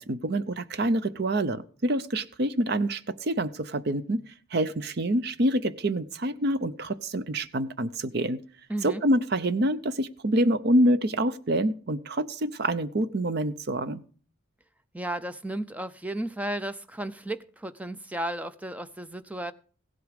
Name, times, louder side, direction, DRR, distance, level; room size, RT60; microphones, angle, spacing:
voice 1, 0.0-4.2 4.5-8.4 8.8-14.0, right 1 dB, 50° right, 0.7 m, -26 dB
voice 2, 8.7-9.0 14.9-19.5, right 1 dB, 5° right, 0.5 m, -34 dB
16.0 x 8.1 x 5.1 m
head